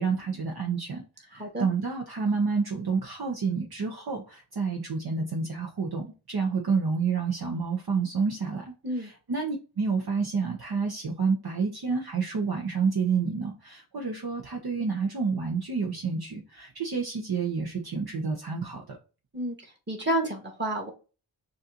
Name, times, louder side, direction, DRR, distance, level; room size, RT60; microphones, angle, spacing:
voice 1, 0.0-19.0, right 5 dB, 50° right, 1 dB, 1.1 m, -29 dB
voice 2, 19.9-20.9, right 1 dB, 20° right, 0 dB, 2.0 m, -29 dB
6.3 x 2.6 x 3.0 m, 0.33 s
cardioid pair, 50°, 48 cm